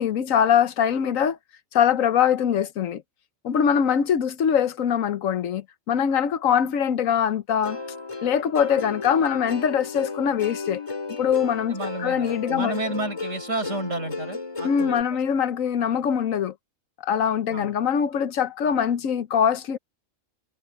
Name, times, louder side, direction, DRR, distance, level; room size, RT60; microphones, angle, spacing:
voice 1, 0.0-1.4 1.7-3.0 3.4-7.8 8.2-10.8 11.2-12.7 14.6-16.5 17.0-19.8, left 8 dB, 70° left, 1.2 m, -23 dB
Plucked string instrument, 7.6-15.0, left 3 dB, 20° left, 2.8 m, -34 dB
voice 2, 11.7-15.0 17.5-17.7, right 2 dB, 60° right, 5.0 m, -31 dB
omnidirectional pair, 1.5 m